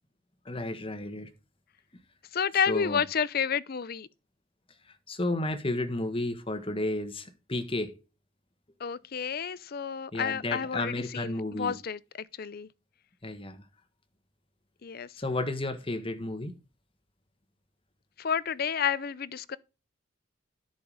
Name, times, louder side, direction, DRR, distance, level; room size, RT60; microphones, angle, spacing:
voice 1, 0.4-1.3 2.7-3.0 5.1-7.9 10.1-11.8 13.2-13.6 15.2-16.5, left 2 dB, 25° left, 1.4 m, -32 dB
voice 2, 2.3-4.1 8.8-12.0 12.4-12.7 14.8-15.1 18.2-19.6, left 7 dB, 50° left, 0.5 m, -30 dB
10.5 x 5.8 x 5.1 m
head